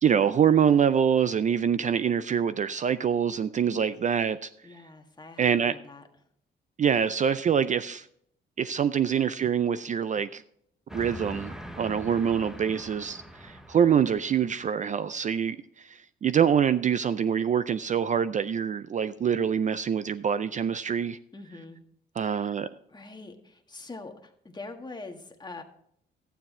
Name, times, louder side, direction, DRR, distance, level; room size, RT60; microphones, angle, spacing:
voice 1, 0.0-4.5 5.4-5.8 6.8-8.1 8.6-10.4 10.9-21.2 22.2-22.7, right 8 dB, 40° right, 14 dB, 0.4 m, -25 dB
voice 2, 4.6-6.0 11.8-12.2 21.3-21.8 22.2-22.5 22.9-25.6, left 3 dB, 20° left, 4 dB, 1.5 m, -44 dB
Train, 10.9-14.8, equal, ahead, 1.0 m, -43 dB
12.0 x 9.2 x 3.7 m, 0.68 s
cardioid pair, 90°, 20 cm